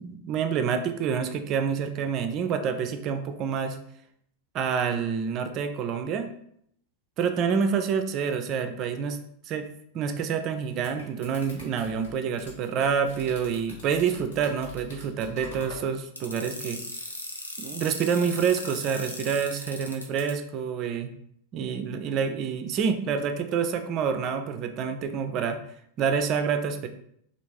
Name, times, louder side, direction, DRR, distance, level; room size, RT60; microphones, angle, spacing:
voice 1, 0.0-3.8 4.5-6.3 7.2-9.2 9.4-9.7 9.9-16.8 17.6-21.1 21.5-25.6 26.0-26.9, right 6 dB, 35° right, 8 dB, 0.4 m, -27 dB
sound 1, 10.5-15.9, left 1 dB, 60° left, 1.3 m, -45 dB
sound 2, 16.2-20.3, left 1 dB, 85° left, 0.5 m, -37 dB
3.3 x 2.3 x 3.1 m, 0.70 s
figure-of-eight pair, 90°, 0 cm